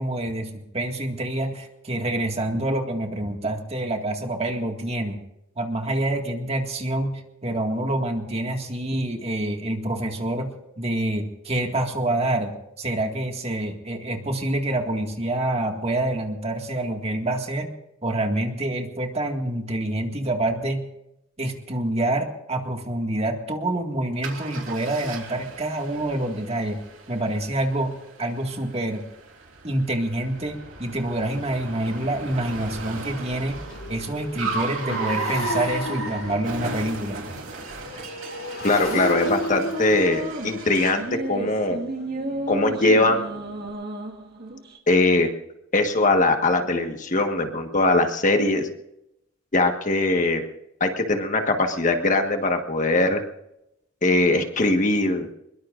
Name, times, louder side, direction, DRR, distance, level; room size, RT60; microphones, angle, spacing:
voice 1, 0.0-5.2 5.6-17.7 18.0-20.9 21.4-26.8 27.1-29.1 29.6-37.2, right 1 dB, 30° right, 3 dB, 2.0 m, -27 dB
Car, 24.2-41.1, right 4 dB, 75° right, 3.4 m, -36 dB
Motorcycle, 31.1-31.2 31.7-31.8 32.1-43.7, left 1 dB, 75° left, 4.2 m, -35 dB
voice 2, 38.6-41.8 42.5-43.3 44.9-45.3 45.7-48.7 49.5-50.4 50.8-53.2 54.0-55.3, left 2 dB, 40° left, 5 dB, 1.5 m, -21 dB
sound 1, 38.9-44.8, right 1 dB, 50° right, 1.9 m, -33 dB
23.0 x 22.0 x 2.6 m, 0.85 s
head